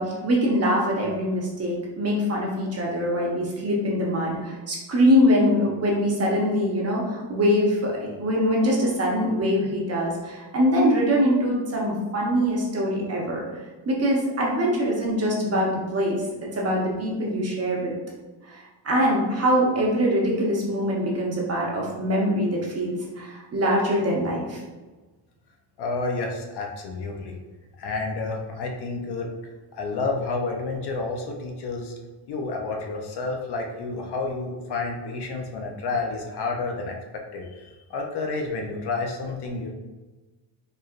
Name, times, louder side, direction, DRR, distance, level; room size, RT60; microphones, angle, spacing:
voice 1, 0.0-13.4 13.8-16.2 16.5-17.9 18.5-24.6, equal, 35° right, -3 dB, 0.9 m, -23 dB
voice 2, 25.8-27.3 27.8-29.3 29.8-31.9 32.3-36.9 37.3-39.7, left 3 dB, 60° left, 1 dB, 0.7 m, -30 dB
4.5 x 3.2 x 2.4 m, 1.2 s
cardioid pair, 165°, 45 cm